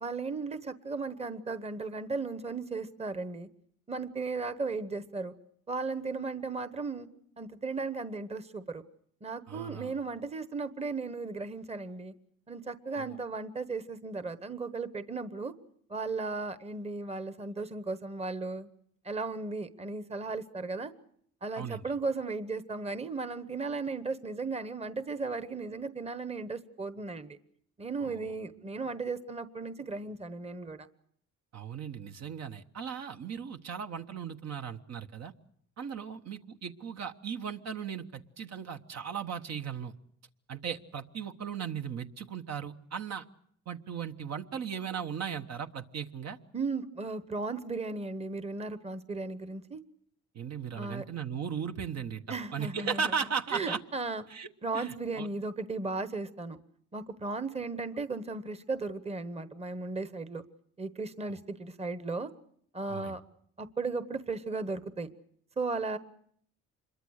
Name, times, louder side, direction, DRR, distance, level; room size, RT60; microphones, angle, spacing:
voice 1, 0.0-3.5 3.9-5.3 5.7-7.1 7.4-8.8 9.2-12.1 12.5-15.5 15.9-18.7 19.0-20.9 21.4-27.4 27.8-30.9 46.5-49.8 50.7-51.0 52.3-53.2 53.5-54.2 54.6-56.6 56.9-60.4 60.8-62.3 62.7-63.2 63.6-65.1 65.6-66.0, right 3 dB, 20° right, 12 dB, 1.1 m, -36 dB
voice 2, 9.5-9.9 12.9-13.2 21.6-21.8 28.0-28.3 31.5-35.3 35.8-39.9 40.5-43.2 43.7-46.4 50.3-52.2 52.5-53.8 54.3-55.3 61.3-61.4 62.9-63.2, right 7 dB, 60° right, 6 dB, 1.3 m, -37 dB
26.0 x 22.5 x 6.5 m, 0.66 s
cardioid pair, 90°, 30 cm